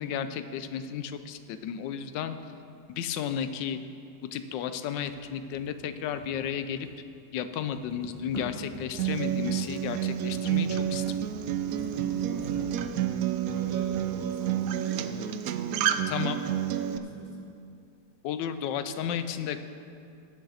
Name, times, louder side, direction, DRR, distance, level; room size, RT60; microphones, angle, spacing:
voice 1, 0.0-2.4 2.9-3.8 4.3-6.9 7.3-11.0 16.1-16.4 18.2-19.6, left 8 dB, 85° left, 10 dB, 1.3 m, -33 dB
sound 1, 4.9-7.1 7.4-14.7, equal, 35° left, 1.7 m, -44 dB
Acoustic guitar, 9.0-17.0, right 10 dB, 70° right, 0.8 m, -29 dB
voice 2, 12.5-12.9 13.5-15.3 16.3-17.5, right 2 dB, 45° right, -5 dB, 1.8 m, -45 dB
19.0 x 6.5 x 4.2 m, 2.5 s
omnidirectional pair, 1.9 m